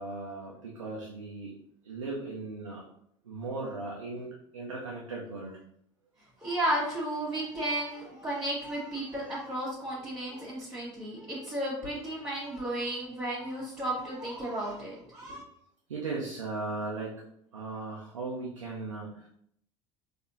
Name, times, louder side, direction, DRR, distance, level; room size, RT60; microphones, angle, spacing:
voice 1, 0.0-1.5 1.8-2.8 3.2-5.6 15.9-17.2 17.5-19.3, right 3 dB, 85° right, -4 dB, 0.6 m, -37 dB
voice 2, 6.4-15.4, right 1 dB, 15° right, -8 dB, 1.3 m, -33 dB
4.0 x 2.8 x 2.7 m, 0.70 s
figure-of-eight pair, 65°, 16 cm